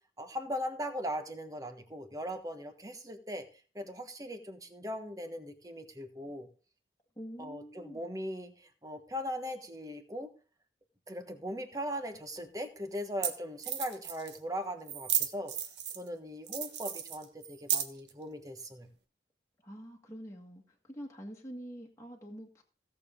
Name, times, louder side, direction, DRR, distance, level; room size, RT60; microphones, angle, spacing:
voice 1, 0.2-3.5 3.7-6.5 7.4-10.3 11.1-15.5 15.9-18.9, equal, 20° right, 1.3 m, -39 dB
voice 2, 7.2-8.0 19.6-22.6, equal, 15° left, 1.8 m, -46 dB
sound 1, 12.1-12.2 13.0-13.1 13.2-13.3 13.6-14.4 14.9-16.1 16.5-18.1, right 9 dB, 80° right, 1.5 m, -33 dB
16.5 x 7.0 x 3.8 m
head